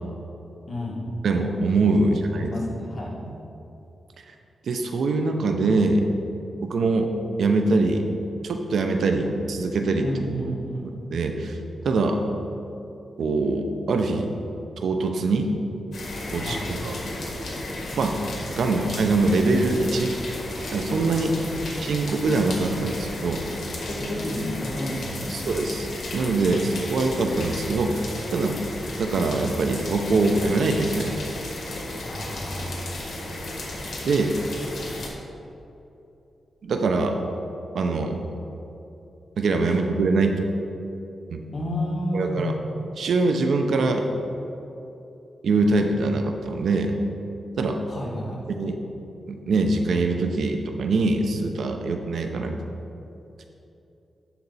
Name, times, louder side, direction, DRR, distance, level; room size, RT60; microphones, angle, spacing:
voice 1, 0.7-1.1 2.0-3.2 10.0-11.0 16.3-16.7 21.2-21.5 23.9-25.5 32.0-32.9 39.7-39.8 41.5-42.5 47.8-48.5, equal, 50° left, -4 dB, 1.8 m, -31 dB
voice 2, 1.2-2.5 4.7-6.1 6.6-7.1 7.4-8.0 8.4-10.1 11.1-11.6 11.8-12.2 13.2-14.3 14.8-15.5 16.3-16.9 18.0-18.2 18.6-20.1 20.7-21.3 21.8-23.4 25.3-25.9 26.1-28.6 29.0-31.1 34.0-34.3 36.6-37.2 37.7-38.2 39.4-40.4 41.3-41.5 42.1-42.5 43.0-44.0 45.4-46.9 47.6-47.8 48.6-48.8 49.3-52.6, right 3 dB, 80° right, 5 dB, 0.6 m, -23 dB
sound 1, 15.9-35.1, left 1 dB, 65° left, 1.6 m, -34 dB
11.5 x 4.2 x 4.1 m, 2.8 s
cardioid pair, 85°, 0 cm